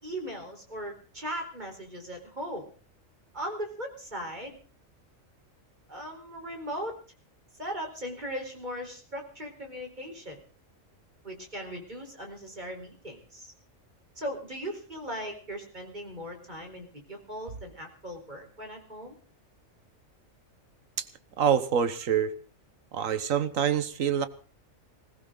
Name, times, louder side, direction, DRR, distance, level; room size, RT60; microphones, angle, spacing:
voice 1, 0.0-2.6 3.3-4.6 5.9-7.0 7.6-10.4 11.2-13.5 14.2-19.1, equal, 35° right, 3 dB, 4.4 m, -38 dB
voice 2, 21.4-22.3 22.9-24.3, right 8 dB, 80° right, 13 dB, 1.5 m, -26 dB
20.5 x 16.5 x 3.9 m, 0.40 s
omnidirectional pair, 1.4 m